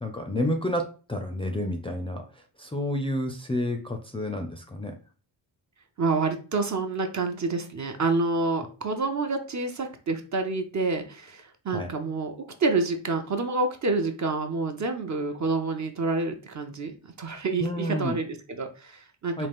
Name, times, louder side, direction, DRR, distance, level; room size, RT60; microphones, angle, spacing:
voice 1, 0.0-2.2 2.6-5.0 11.7-11.9 17.6-18.2 19.4-19.5, left 1 dB, 10° left, 2 dB, 0.5 m, -30 dB
voice 2, 6.0-19.5, right 3 dB, 40° right, 5 dB, 0.7 m, -28 dB
3.9 x 2.4 x 3.5 m, 0.37 s
cardioid pair, 85°, 46 cm